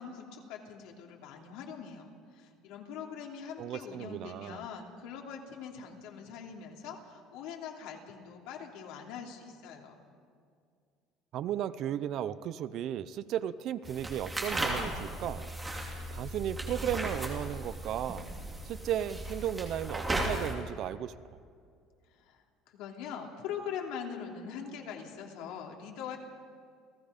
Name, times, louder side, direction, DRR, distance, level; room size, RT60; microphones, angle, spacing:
voice 1, 0.0-9.9 22.1-26.2, left 7 dB, 70° left, 1 dB, 3.0 m, -42 dB
voice 2, 3.6-4.6 11.3-15.4 16.1-18.3 18.6-21.1, right 10 dB, 45° right, 15 dB, 0.5 m, -35 dB
sound 1, 13.8-20.5, right 1 dB, 10° right, 2.6 m, -36 dB
29.5 x 17.0 x 5.2 m, 2.2 s
cardioid pair, 175°, 0 cm